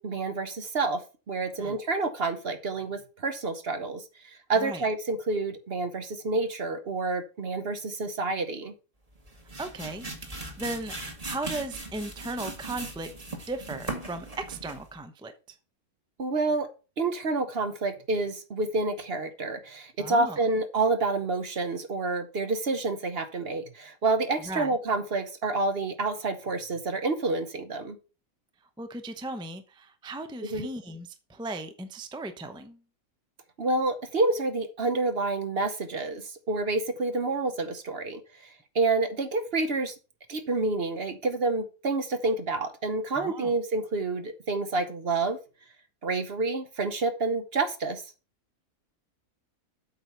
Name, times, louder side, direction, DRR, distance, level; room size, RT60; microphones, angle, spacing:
voice 1, 0.0-8.7 16.2-16.7 17.0-28.0 30.4-30.7 33.6-38.2 38.7-39.9 40.3-45.4 46.0-48.0, right 3 dB, 45° right, 10 dB, 1.0 m, -28 dB
sound 1, 9.1-14.9, right 2 dB, 25° right, 1.7 m, -39 dB
voice 2, 9.6-13.1 13.5-15.6 20.0-20.4 24.4-24.7 28.8-32.8 43.2-43.5, right 2 dB, 5° right, 8 dB, 0.4 m, -37 dB
8.1 x 4.4 x 6.7 m, 0.33 s
omnidirectional pair, 1.6 m